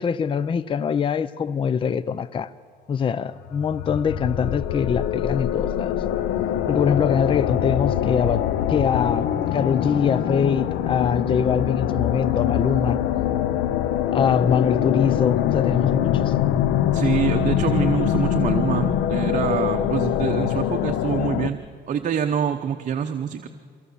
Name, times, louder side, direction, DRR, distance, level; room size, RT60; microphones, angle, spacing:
voice 1, 0.0-2.5 2.9-5.9 6.7-13.0 14.1-16.3, left 7 dB, 30° left, 0.5 m, -23 dB
sound 1, 3.5-21.5, left 10 dB, 85° left, 0.8 m, -23 dB
voice 2, 16.9-21.6 21.9-23.5, right 8 dB, 50° right, 0.9 m, -25 dB
23.5 x 16.5 x 7.0 m
cardioid pair, 110°, 17 cm